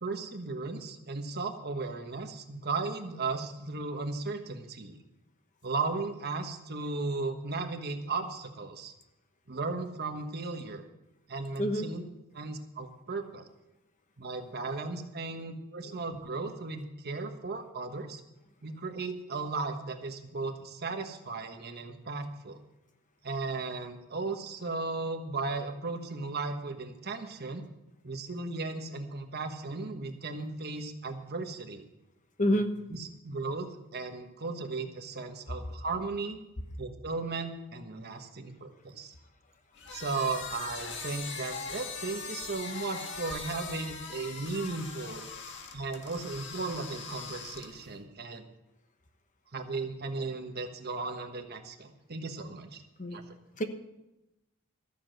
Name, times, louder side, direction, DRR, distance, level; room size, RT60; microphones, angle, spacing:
voice 1, 0.0-5.0 5.6-8.9 9.5-10.8 11.3-12.0 12.3-13.4 14.2-18.2 18.6-22.6 23.2-27.6 28.0-31.8 32.4-32.6 32.9-36.4 36.8-39.1 39.9-45.2 45.7-48.4 49.5-52.8 53.1-53.2, right 3 dB, 50° right, 6 dB, 1.3 m, -36 dB
voice 2, 32.4-32.7 53.0-53.2 53.6-53.7, equal, 35° left, 7 dB, 1.1 m, -27 dB
sound 1, 39.8-48.0, left 4 dB, 55° left, 1.6 m, -41 dB
14.0 x 7.1 x 7.8 m, 0.93 s
head